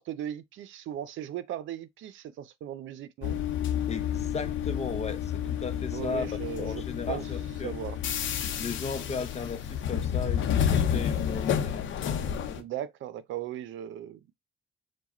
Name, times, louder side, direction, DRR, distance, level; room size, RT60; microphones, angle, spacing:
voice 1, 0.0-3.4 5.9-7.3 7.6-8.0 12.5-14.4, right 11 dB, 75° right, 0.6 m, -38 dB
sound 1, 3.2-12.6, left 9 dB, 75° left, 0.7 m, -30 dB
voice 2, 3.9-6.3 6.6-7.7 8.6-11.9, left 4 dB, 35° left, 0.7 m, -36 dB
4.7 x 2.3 x 4.2 m
cardioid pair, 90°, 20 cm